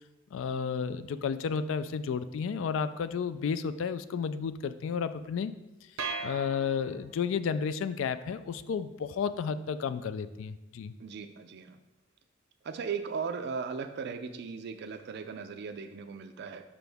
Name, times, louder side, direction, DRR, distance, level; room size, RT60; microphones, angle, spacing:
voice 1, 0.3-5.5 6.2-10.9, left 6 dB, 65° left, 13 dB, 0.3 m, -32 dB
sound 1, 6.0-7.3, right 4 dB, 80° right, 0.7 m, -38 dB
voice 2, 11.0-11.8 12.6-16.6, right 5 dB, 55° right, 7 dB, 0.4 m, -37 dB
6.1 x 5.7 x 3.4 m, 0.99 s
head